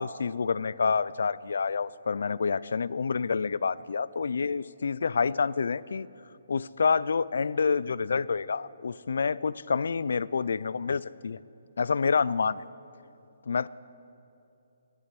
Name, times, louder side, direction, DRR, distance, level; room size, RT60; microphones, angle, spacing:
voice 1, 0.0-6.1 6.5-11.4 11.8-12.6 13.5-13.7, left 5 dB, 70° left, 19 dB, 0.3 m, -28 dB
14.5 x 11.5 x 6.1 m, 2.8 s
hypercardioid pair, 165°, 0 cm